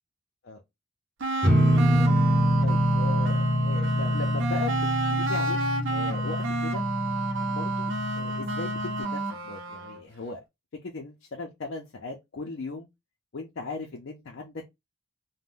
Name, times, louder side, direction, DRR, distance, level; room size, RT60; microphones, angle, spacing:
sound 1, 1.2-10.0, right 2 dB, 60° right, 0.6 m, -30 dB
sound 2, 1.4-9.0, equal, 5° left, 0.6 m, -26 dB
voice 1, 2.6-5.6 5.9-6.8 7.4-10.4 10.8-12.9 13.3-14.6, left 3 dB, 55° left, 0.5 m, -38 dB
2.5 x 2.1 x 3.5 m
head